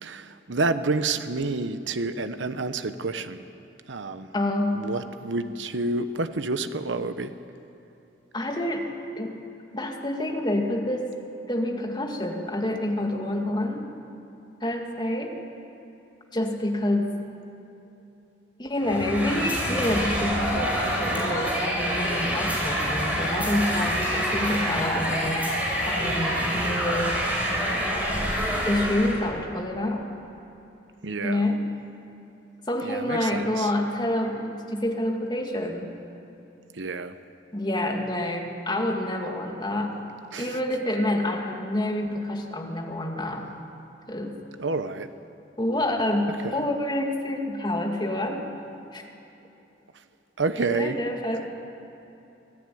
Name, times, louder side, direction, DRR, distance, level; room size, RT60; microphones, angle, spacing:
voice 1, 0.0-3.4 3.9-4.3 4.8-7.3 31.0-31.4 32.8-33.7 36.7-37.2 40.3-40.6 44.6-45.1 46.4-46.6 49.9-50.0 50.4-51.0 51.4-51.5, right 3 dB, 85° right, 10 dB, 0.9 m, -29 dB
voice 2, 4.3-4.8 8.3-8.9 9.2-9.3 9.7-11.1 11.5-13.9 14.6-15.3 16.3-17.1 18.6-25.5 25.9-27.1 28.6-30.0 31.2-31.6 32.7-35.9 37.5-39.9 40.4-43.4 44.1-44.4 45.6-48.5 48.9-49.0 50.6-51.5, left 1 dB, 25° left, 2 dB, 2.2 m, -27 dB
sound 1, 18.7-26.6, left 1 dB, 80° left, 3.9 m, -39 dB
sound 2, 18.8-29.2, equal, 10° right, 5.1 m, -27 dB
24.5 x 15.0 x 9.3 m, 3.0 s
head